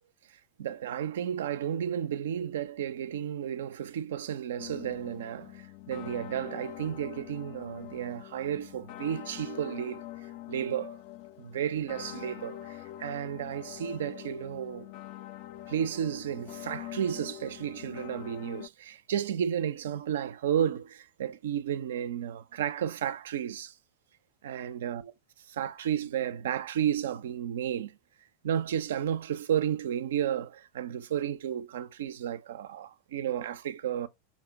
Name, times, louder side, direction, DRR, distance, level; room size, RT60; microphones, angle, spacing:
voice 1, 0.6-10.0 10.5-11.0 11.4-14.9 15.7-23.7 24.4-25.1 25.5-28.0 28.4-34.1, right 9 dB, 65° right, 0.4 m, -32 dB
sound 1, 4.6-18.7, left 14 dB, 45° left, 0.3 m, -44 dB
4.9 x 2.3 x 3.5 m
figure-of-eight pair, 85°, 0 cm